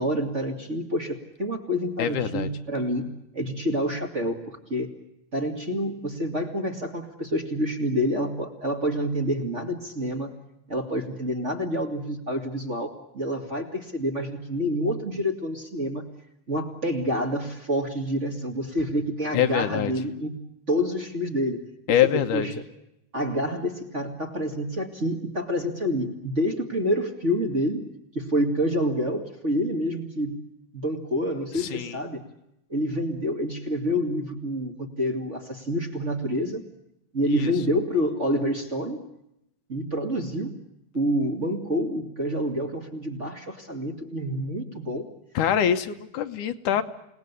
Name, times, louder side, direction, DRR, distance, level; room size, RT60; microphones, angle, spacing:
voice 1, 0.0-4.9 5.3-10.3 10.7-16.1 16.5-20.4 20.7-21.6 22.1-22.6 23.1-27.8 28.1-30.4 30.7-32.2 32.7-36.6 37.1-39.0 39.7-40.5 40.9-45.1, equal, 25° right, 3 dB, 2.2 m, -28 dB
voice 2, 2.0-2.5 19.3-19.9 21.9-22.5 31.5-32.0 37.4-37.5 45.3-46.8, left 10 dB, 75° left, 8 dB, 2.6 m, -24 dB
28.5 x 19.0 x 8.3 m, 0.82 s
omnidirectional pair, 3.7 m